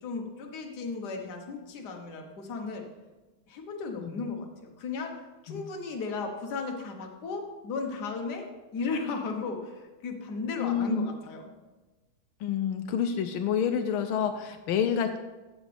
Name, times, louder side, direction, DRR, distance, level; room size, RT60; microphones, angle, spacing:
voice 1, 0.0-2.9 3.5-5.1 5.4-8.5 8.7-11.5, left 4 dB, 55° left, 2 dB, 1.6 m, -35 dB
voice 2, 10.6-11.1 12.4-15.2, left 8 dB, 85° left, 7 dB, 1.5 m, -28 dB
14.5 x 6.2 x 3.4 m, 1.2 s
omnidirectional pair, 2.3 m